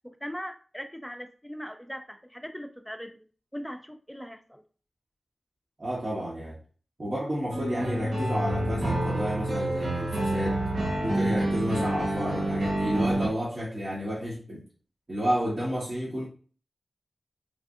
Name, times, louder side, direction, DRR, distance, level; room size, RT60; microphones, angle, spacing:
voice 1, 0.2-3.3 3.5-4.6, equal, 5° left, 6 dB, 0.5 m, -40 dB
voice 2, 5.8-6.6 7.0-10.6 11.0-14.6 15.1-16.2, equal, 55° right, -7 dB, 1.1 m, -31 dB
sound 1, 7.5-13.3, right 1 dB, 80° right, 0.8 m, -28 dB
3.4 x 2.5 x 2.4 m, 0.39 s
cardioid pair, 45°, 0 cm